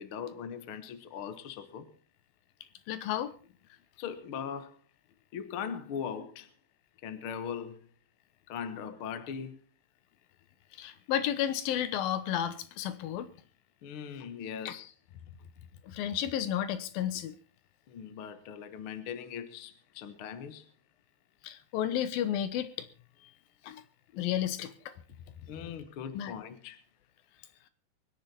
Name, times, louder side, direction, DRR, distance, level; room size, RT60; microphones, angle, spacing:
voice 1, 0.0-1.9 3.7-4.8 5.3-6.5 7.0-7.8 8.5-9.6 13.8-14.9 17.9-20.7 25.5-26.8, left 7 dB, 55° left, 1.5 m, -40 dB
voice 2, 2.9-3.3 10.7-13.3 14.7-14.8 15.8-17.4 21.4-22.9 23.6-23.8 24.1-24.9 26.1-26.3, left 10 dB, 75° left, 2.8 m, -32 dB
23.5 x 10.0 x 4.3 m
omnidirectional pair, 4.3 m